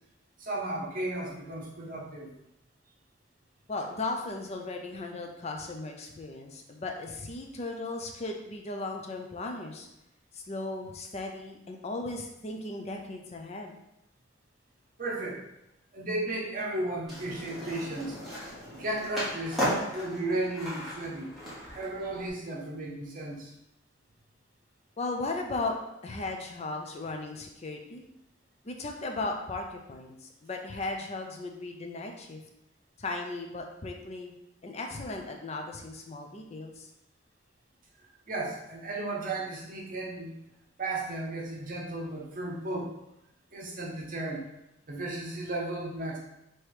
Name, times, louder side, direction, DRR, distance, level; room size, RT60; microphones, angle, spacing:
voice 1, 0.4-2.3 15.0-15.4 15.9-18.2 18.7-21.3 21.7-23.5 38.3-40.3 40.8-42.9 43.5-44.5 44.9-46.2, right 2 dB, 45° right, -2 dB, 0.9 m, -34 dB
voice 2, 3.7-9.9 10.3-13.7 25.0-25.8 26.0-28.0 28.6-32.4 33.0-34.3 34.6-36.9, left 2 dB, 35° left, 3 dB, 0.5 m, -36 dB
Skateboard, 17.1-22.3, equal, ahead, 1.2 m, -36 dB
3.4 x 3.0 x 4.6 m, 0.87 s
head